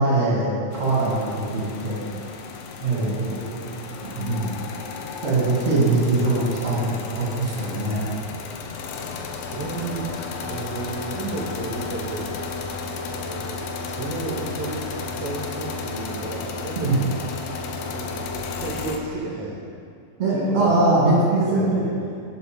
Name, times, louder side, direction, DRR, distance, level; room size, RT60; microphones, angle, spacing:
voice 1, 0.0-2.0 2.8-3.3 4.1-4.5 5.2-8.1 16.8-16.9 20.2-21.8, right 2 dB, 30° right, -5 dB, 1.5 m, -22 dB
sound 1, 0.7-19.0, left 4 dB, 90° left, 2.4 m, -33 dB
voice 2, 2.8-4.2 9.5-10.1 10.4-12.3 12.9-17.1 17.6-19.6 20.3-20.8 21.1-22.1, right 3 dB, 75° right, -4 dB, 1.4 m, -33 dB
6.9 x 5.1 x 6.5 m, 2.3 s
omnidirectional pair, 4.0 m